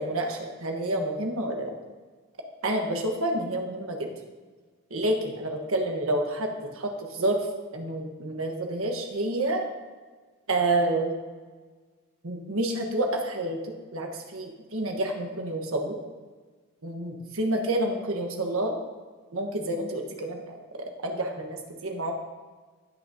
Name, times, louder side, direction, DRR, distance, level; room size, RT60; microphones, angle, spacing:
voice 1, 0.0-1.7 2.6-4.1 4.9-7.5 7.7-9.6 10.5-11.1 12.2-16.0 16.8-18.7 19.3-20.6 21.0-22.1, right 1 dB, 75° right, 2 dB, 1.3 m, -29 dB
17.0 x 6.2 x 2.8 m, 1.4 s
head